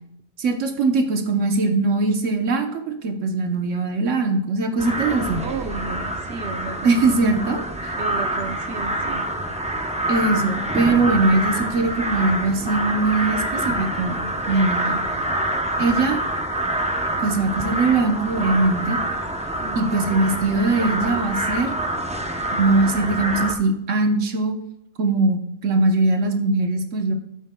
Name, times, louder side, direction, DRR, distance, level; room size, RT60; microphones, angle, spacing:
voice 1, 0.4-5.4 6.8-7.9 10.1-14.2 14.5-15.0 15.8-16.2 17.2-19.0 19.8-21.7 22.5-24.6 25.0-27.1, right 3 dB, 80° right, 5 dB, 1.3 m, -21 dB
sound 1, 4.8-23.5, right 1 dB, 10° right, 0.5 m, -26 dB
voice 2, 5.4-7.3 8.0-9.3 15.2-15.3 19.6-20.2, right 4 dB, 60° right, 7 dB, 1.1 m, -33 dB
12.5 x 9.3 x 2.2 m, 0.78 s
omnidirectional pair, 1.3 m